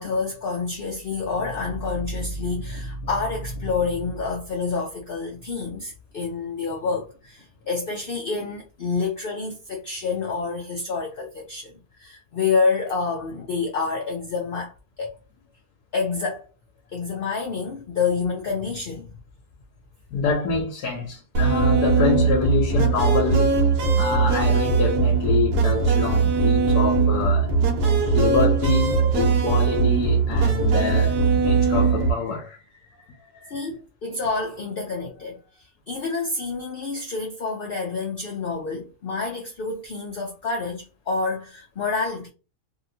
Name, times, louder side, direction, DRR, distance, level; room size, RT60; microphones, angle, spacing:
voice 1, 0.0-15.1 15.9-16.5 16.9-19.1 33.5-42.3, left 4 dB, 70° left, 0.5 m, -28 dB
voice 2, 20.1-23.6 23.9-27.5 28.0-32.6 33.4-33.7, left 5 dB, 85° left, 1.2 m, -26 dB
sound 1, 21.3-32.1, right 5 dB, 80° right, 1.3 m, -20 dB
2.8 x 2.8 x 2.7 m
omnidirectional pair, 1.7 m